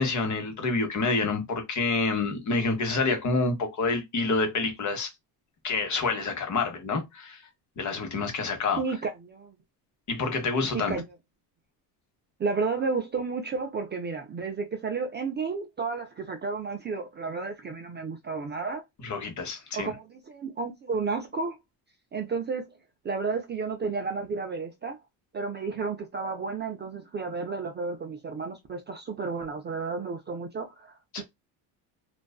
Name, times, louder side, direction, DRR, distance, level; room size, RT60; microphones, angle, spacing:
voice 1, 0.0-5.1 5.6-7.4 7.8-8.8 10.1-10.9 19.0-19.9 31.1-31.2, left 3 dB, 40° left, 1.0 m, -28 dB
voice 2, 8.8-9.5 10.7-11.0 12.4-18.8 19.7-21.6 22.1-22.7 23.0-25.0 25.3-31.2, right 4 dB, 25° right, 0.4 m, -32 dB
2.5 x 2.3 x 2.3 m
cardioid pair, 110°, 45 cm